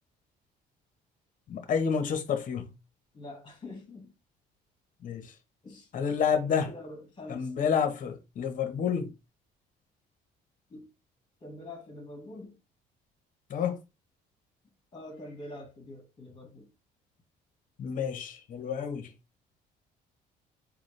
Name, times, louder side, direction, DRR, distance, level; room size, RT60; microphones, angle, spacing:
voice 1, 1.5-2.7 5.0-5.3 5.9-6.7 7.3-9.1 13.5-13.8 17.8-19.1, left 7 dB, 50° left, 1.0 m, -29 dB
voice 2, 3.1-4.1 5.6-5.9 6.4-7.5 10.7-10.9 11.4-12.6 14.9-16.7, left 1 dB, 30° left, 1.7 m, -45 dB
4.1 x 2.3 x 3.2 m
cardioid pair, 110°, 17 cm